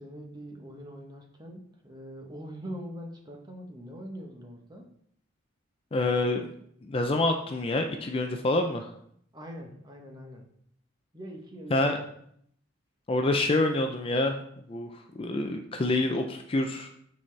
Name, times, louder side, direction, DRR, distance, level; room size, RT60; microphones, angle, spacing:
voice 1, 0.0-4.9 9.3-10.5 11.1-12.1, equal, 20° right, 2 dB, 0.9 m, -43 dB
voice 2, 5.9-6.5 6.8-8.9 11.7-12.0 13.1-14.4 14.7-16.9, left 2 dB, 25° left, 4 dB, 0.4 m, -27 dB
8.9 x 4.1 x 3.2 m, 0.69 s
head